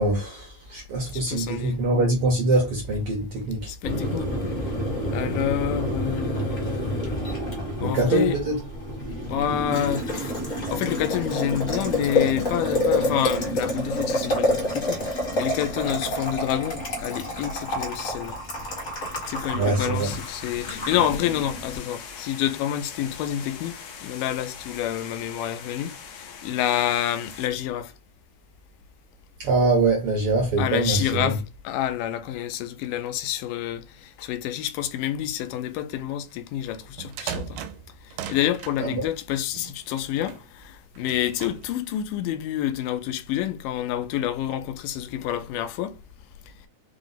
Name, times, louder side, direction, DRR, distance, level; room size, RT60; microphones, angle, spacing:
voice 1, 0.0-3.7 7.8-8.6 19.5-20.1 29.4-31.3 38.8-39.0, right 2 dB, 70° right, 1.4 m, -23 dB
voice 2, 1.1-1.9 3.7-4.3 5.1-7.3 7.8-8.4 9.3-10.3 10.7-18.4 19.3-27.9 30.6-37.6 38.3-46.0, left 11 dB, 90° left, 2.2 m, -28 dB
Boiling, 3.8-21.8, left 1 dB, 40° left, 1.0 m, -28 dB
sound 1, 19.9-27.5, left 6 dB, 70° left, 1.8 m, -41 dB
sound 2, 36.8-38.8 39.5-40.4 40.9-41.7, right 8 dB, 90° right, 2.3 m, -37 dB
5.2 x 2.0 x 3.9 m
omnidirectional pair, 3.8 m